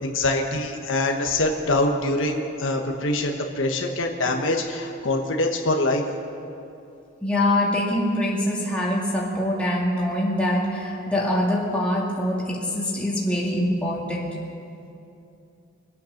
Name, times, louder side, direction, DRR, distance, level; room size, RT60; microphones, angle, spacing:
voice 1, 0.0-6.0, left 2 dB, 70° left, 2 dB, 1.2 m, -24 dB
voice 2, 7.2-14.4, left 1 dB, 5° left, -5 dB, 2.3 m, -24 dB
24.0 x 8.6 x 6.5 m, 2.7 s
head